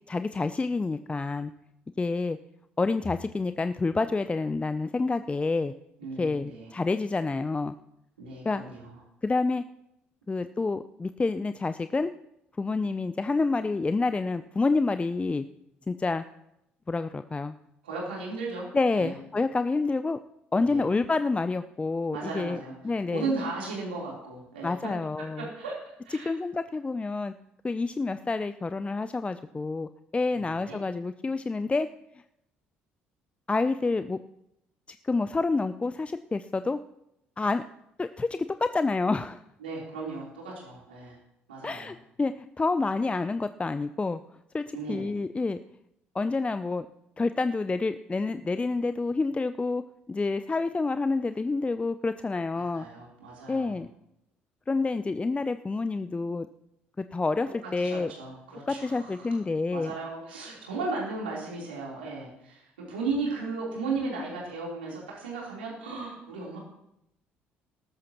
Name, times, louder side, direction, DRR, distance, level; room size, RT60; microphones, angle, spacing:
voice 1, 0.1-1.5 2.0-2.4 2.8-5.7 6.2-7.8 8.4-8.6 9.2-9.6 10.3-12.1 12.6-15.4 15.9-16.2 16.9-17.5 18.7-20.2 20.5-22.6 22.8-23.3 24.6-25.5 26.2-27.3 27.6-31.9 33.5-34.2 35.0-36.8 37.4-37.6 38.0-39.4 41.6-44.2 44.5-45.6 46.1-46.9 47.2-49.8 50.1-52.9 53.5-53.9 54.7-56.5 57.0-58.1 58.7-59.9, left 3 dB, 20° left, 11 dB, 0.5 m, -28 dB
voice 2, 6.0-6.7 8.2-9.0 17.8-18.7 18.9-19.1 20.6-20.9 22.1-22.7 23.1-24.7 25.2-25.8 26.0-26.3 30.3-30.8 39.6-41.2 41.5-41.9 44.7-45.1 52.5-53.8 57.8-59.3 59.7-66.6, right 3 dB, 90° right, -4 dB, 3.7 m, -35 dB
19.0 x 13.5 x 3.0 m, 0.82 s
hypercardioid pair, 55°, 5 cm